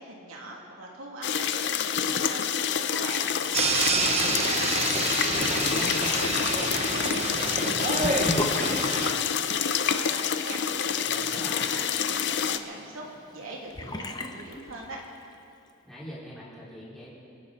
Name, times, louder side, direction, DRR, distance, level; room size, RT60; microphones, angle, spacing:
voice 1, 0.0-9.5 9.7-10.6 10.9-13.0 13.3-15.0, right 2 dB, 80° right, -2 dB, 2.7 m, -42 dB
sound 1, 1.2-12.6, left 8 dB, 55° left, 0.6 m, -28 dB
sound 2, 3.5-9.1, right 3 dB, 30° right, 1.2 m, -28 dB
voice 2, 5.5-6.2 11.0-11.7 15.8-17.1, equal, ahead, -10 dB, 4.8 m, -40 dB
Sink (filling or washing) / Bathtub (filling or washing), 8.0-15.3, left 1 dB, 20° left, 0.7 m, -38 dB
28.5 x 11.0 x 4.2 m, 2.8 s
head